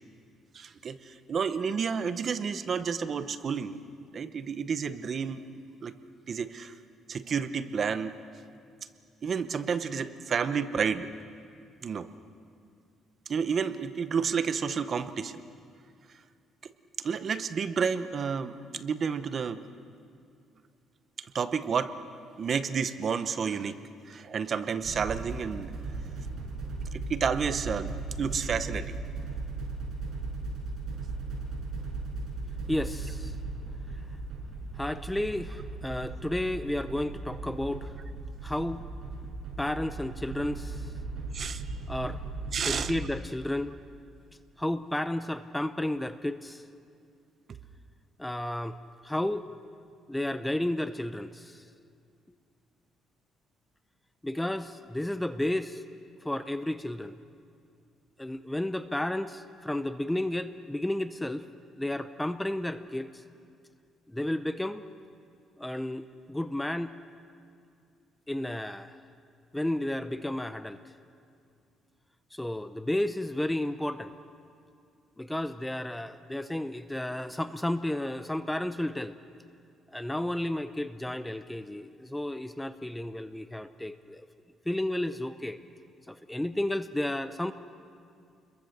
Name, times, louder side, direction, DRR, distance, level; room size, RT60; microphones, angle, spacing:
voice 1, 0.5-3.8 4.1-5.4 5.8-5.9 6.3-6.7 7.1-8.2 9.2-11.1 11.8-12.1 13.3-15.4 16.6-16.7 17.0-19.6 21.2-21.9 22.4-23.8 24.1-25.7 26.9-27.9 28.2-29.0 41.3-41.6 42.5-42.9 47.5-47.6, right 6 dB, 40° right, 11 dB, 0.9 m, -30 dB
sound 1, 24.8-43.1, right 3 dB, 55° right, 6.6 m, -37 dB
voice 2, 32.7-33.3 34.8-38.0 38.4-38.8 39.6-40.9 41.9-42.2 42.6-43.7 44.6-46.6 48.2-48.8 49.0-49.5 50.1-51.6 54.2-55.8 56.2-57.2 58.2-61.5 61.8-63.2 64.1-64.8 65.6-66.9 68.3-69.0 69.5-70.8 72.3-74.1 75.2-79.2 79.9-84.3 84.7-85.6 86.1-87.5, left 1 dB, 5° left, 11 dB, 0.6 m, -32 dB
29.0 x 22.0 x 6.7 m, 2.4 s
cardioid pair, 145°, 0 cm